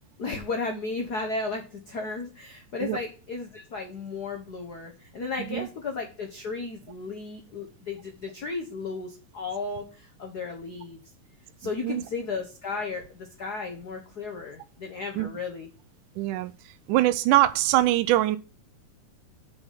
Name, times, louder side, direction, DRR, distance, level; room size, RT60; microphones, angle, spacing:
voice 1, 0.2-11.0 11.6-15.7, left 4 dB, 80° left, 0.8 m, -34 dB
voice 2, 16.2-16.5 16.9-18.4, right 16 dB, 85° right, 2.1 m, -22 dB
6.8 x 5.7 x 7.3 m
omnidirectional pair, 3.6 m